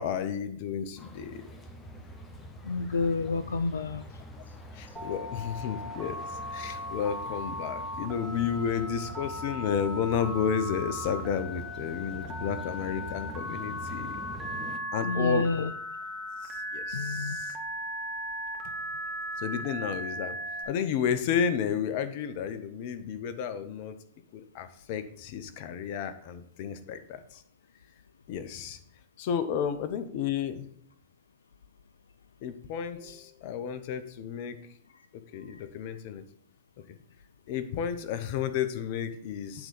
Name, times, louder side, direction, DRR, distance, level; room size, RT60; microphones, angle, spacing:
voice 1, 0.0-1.4 4.7-6.2 6.5-14.2 14.9-15.7 16.4-17.5 19.4-20.4 20.7-24.0 24.3-27.4 28.3-28.8 29.2-30.7 32.4-34.6 35.3-36.2 37.5-39.7, left 8 dB, 55° left, 11 dB, 0.8 m, -32 dB
sound 1, 1.0-14.8, equal, 15° left, 1.1 m, -44 dB
voice 2, 2.6-4.0 15.0-15.7 16.9-17.4, left 3 dB, 85° left, 12 dB, 0.3 m, -29 dB
Telephone, 5.0-20.7, left 1 dB, 10° right, 2.1 m, -37 dB
8.9 x 3.8 x 5.2 m, 0.62 s
hypercardioid pair, 105°, 0 cm